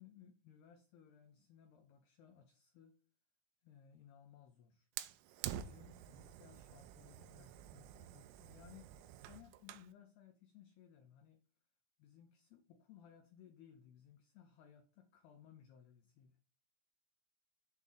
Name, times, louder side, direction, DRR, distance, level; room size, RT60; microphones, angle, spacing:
voice 1, 0.0-3.0 3.6-4.9 5.4-9.0 9.3-11.4 12.0-16.4, left 9 dB, 85° left, 2.3 m, -61 dB
Fire, 5.0-9.9, right 12 dB, 85° right, 3.2 m, -49 dB
8.0 x 3.7 x 6.3 m
omnidirectional pair, 5.8 m